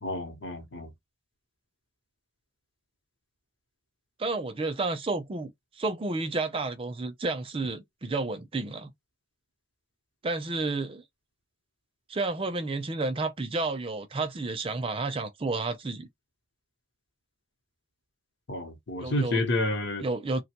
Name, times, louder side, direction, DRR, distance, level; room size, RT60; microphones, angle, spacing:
voice 1, 0.0-0.9 18.5-20.0, left 2 dB, 55° left, 0.8 m, -30 dB
voice 2, 4.2-8.9 10.2-11.0 12.1-16.1 19.0-19.4 20.0-20.4, right 3 dB, 25° right, 0.4 m, -31 dB
3.1 x 2.2 x 2.8 m
head